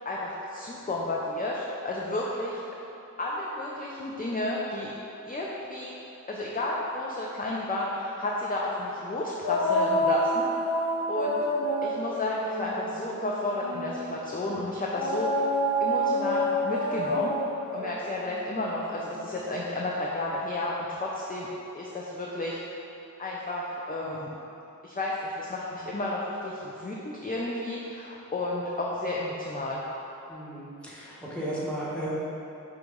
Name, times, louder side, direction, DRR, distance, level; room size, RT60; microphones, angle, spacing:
voice 1, 0.0-2.6 3.2-4.9 5.2-5.9 6.3-10.5 10.8-11.4 11.8-15.4 15.8-17.4 17.7-21.5 21.7-22.8 23.2-24.3 24.8-29.8, left 2 dB, 25° left, -4 dB, 0.4 m, -32 dB
sound 1, 9.4-14.1 14.9-19.6, equal, 75° left, 0.8 m, -28 dB
voice 2, 30.3-32.1, right 1 dB, 5° left, -8 dB, 1.2 m, -35 dB
5.0 x 3.0 x 3.6 m, 3.0 s
wide cardioid pair, 40°, 33 cm